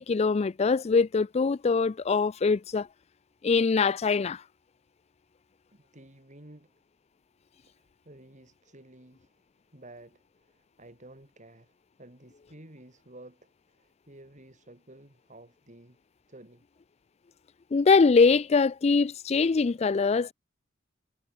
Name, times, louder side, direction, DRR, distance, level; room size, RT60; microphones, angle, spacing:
voice 1, 0.0-2.9 3.4-4.4 17.7-20.3, left 4 dB, 35° left, 0.4 m, -23 dB
voice 2, 5.7-6.7 7.7-9.4 9.7-16.0 16.3-16.7, right 1 dB, 40° right, 4.0 m, -52 dB
head